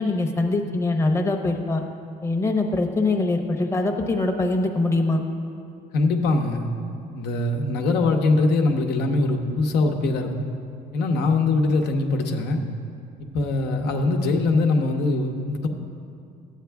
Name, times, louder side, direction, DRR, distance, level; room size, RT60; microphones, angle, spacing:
voice 1, 0.0-1.8 2.2-5.2, left 2 dB, 15° left, 3 dB, 0.8 m, -23 dB
voice 2, 5.9-6.7 7.1-10.5 10.9-12.6 13.2-15.7, left 3 dB, 80° left, 3 dB, 1.0 m, -22 dB
12.5 x 8.3 x 3.5 m, 2.4 s
cardioid pair, 110°, 17 cm